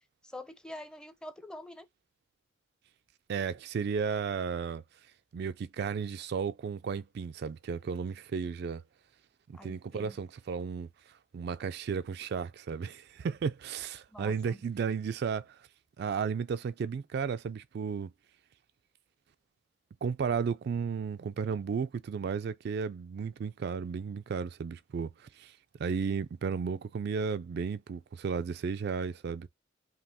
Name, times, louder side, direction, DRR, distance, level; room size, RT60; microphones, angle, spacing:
voice 1, 0.2-1.9 9.5-10.2 14.1-14.6, left 1 dB, 5° left, 0.5 m, -46 dB
voice 2, 3.3-4.8 5.3-8.8 9.5-15.7 16.0-18.1 20.0-29.5, right 6 dB, 55° right, 0.3 m, -34 dB
5.2 x 2.9 x 2.7 m
head